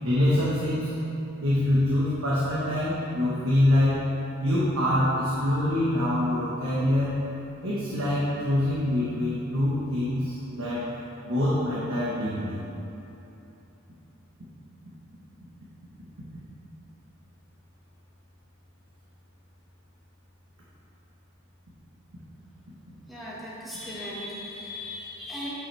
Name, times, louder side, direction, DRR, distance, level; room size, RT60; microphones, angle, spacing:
voice 1, 0.0-0.9 1.4-4.1 4.4-7.2 7.6-10.9 11.3-12.6, left 1 dB, 70° right, -8 dB, 1.2 m, -25 dB
voice 2, 23.1-25.5, left 1 dB, ahead, -9 dB, 1.7 m, -37 dB
9.5 x 5.5 x 3.3 m, 3.0 s
head